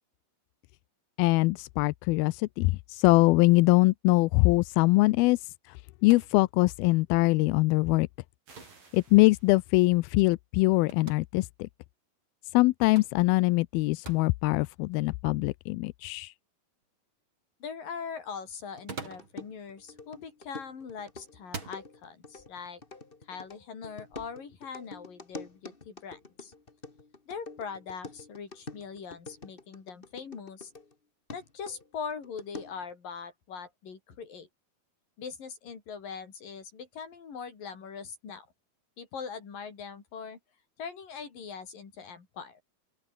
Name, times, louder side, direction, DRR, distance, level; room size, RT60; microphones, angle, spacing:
voice 1, 1.2-8.1 8.9-11.7 12.5-16.3, left 22 dB, 80° left, 2.3 m, -23 dB
sound 1, 6.1-6.4 8.6-8.9 10.9-11.2 13.0-13.2 14.1-14.3 15.3-15.4 18.7-19.4 20.5-20.8 21.4-21.8, right 5 dB, 35° right, 3.7 m, -43 dB
sound 2, 8.5-10.1, right 4 dB, 60° right, 9.0 m, -57 dB
voice 2, 17.6-22.8 23.3-26.5 27.3-30.7 31.3-34.5 35.2-38.5 39.0-40.4 40.8-42.6, left 6 dB, 60° left, 5.9 m, -41 dB
sound 3, 18.8-30.9 31.3-32.9, left 3 dB, 25° left, 1.2 m, -46 dB
open air
omnidirectional pair, 4.6 m